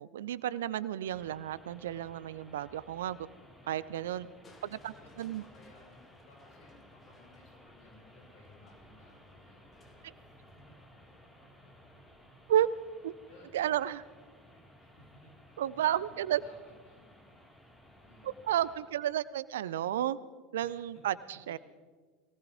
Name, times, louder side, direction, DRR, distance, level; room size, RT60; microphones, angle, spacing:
voice 1, 0.0-3.3 3.7-4.3 4.6-5.4 12.5-12.7 13.0-13.1 13.5-14.0 15.6-16.4 18.2-20.2 20.5-21.6, right 11 dB, 70° right, 18 dB, 0.5 m, -32 dB
sound 1, 1.0-18.8, equal, 10° left, 4.6 m, -58 dB
Crushing, 4.4-12.4 13.9-14.5 14.9-15.0, left 3 dB, 30° left, 3.0 m, -64 dB
voice 2, 4.6-10.2 10.5-11.7 13.3-13.5 14.4-17.7 18.0-19.0 20.6-21.6, left 2 dB, 60° left, -2 dB, 6.0 m, -60 dB
22.0 x 18.0 x 3.6 m, 1.5 s
figure-of-eight pair, 75°, 0 cm